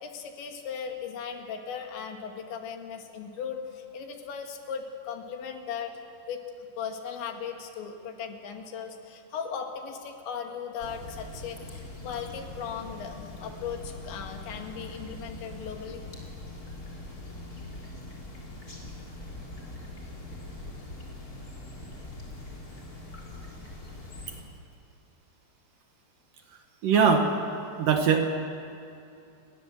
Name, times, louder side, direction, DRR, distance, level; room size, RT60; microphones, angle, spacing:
voice 1, 0.0-5.9 6.3-6.4 6.8-16.0, left 7 dB, 75° left, 3 dB, 4.2 m, -37 dB
sound 1, 10.8-24.4, left 2 dB, 20° left, 3.4 m, -42 dB
voice 2, 26.8-27.3 27.8-28.2, right 6 dB, 60° right, 4 dB, 2.4 m, -21 dB
28.5 x 21.5 x 7.7 m, 2.5 s
omnidirectional pair, 5.3 m